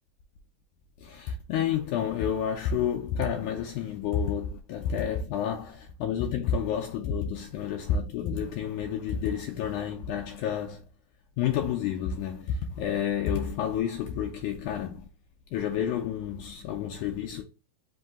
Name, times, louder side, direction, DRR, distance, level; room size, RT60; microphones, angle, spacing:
voice 1, 1.0-10.8 11.4-15.0 15.5-17.4, left 8 dB, 90° left, 1.7 m, -30 dB
5.4 x 2.7 x 3.6 m
omnidirectional pair, 4.1 m